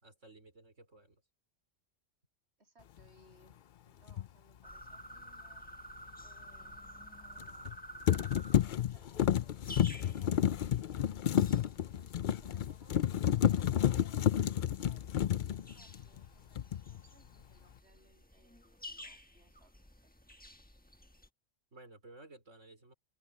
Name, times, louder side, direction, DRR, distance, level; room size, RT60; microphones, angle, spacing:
voice 1, 0.0-1.2 21.7-22.9, right 2 dB, 85° right, 5.1 m, -55 dB
voice 2, 2.6-5.6 6.2-6.8 7.2-8.0 8.4-10.4 10.7-11.1 12.0-19.7 20.0-20.1, right 1 dB, 60° right, 8.0 m, -67 dB
sound 1, 4.1-4.3 7.4-7.8 8.1-16.3 16.6-17.0, left 10 dB, 55° left, 0.6 m, -30 dB
sound 2, 4.6-21.3, equal, 5° left, 1.3 m, -52 dB
omnidirectional pair, 1.2 m